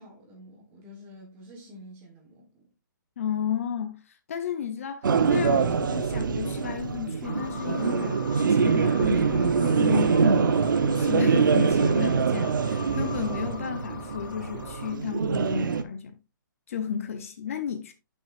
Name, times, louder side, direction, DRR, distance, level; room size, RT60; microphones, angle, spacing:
voice 1, 0.0-2.7, equal, 15° right, 1.5 m, -48 dB
voice 2, 3.2-16.1 16.7-17.9, left 8 dB, 40° left, 0.8 m, -33 dB
sound 1, 5.0-15.8, right 5 dB, 70° right, 0.9 m, -24 dB
sound 2, 7.2-14.9, left 4 dB, 85° left, 3.0 m, -42 dB
9.0 x 6.0 x 2.5 m
hypercardioid pair, 175°, 11 cm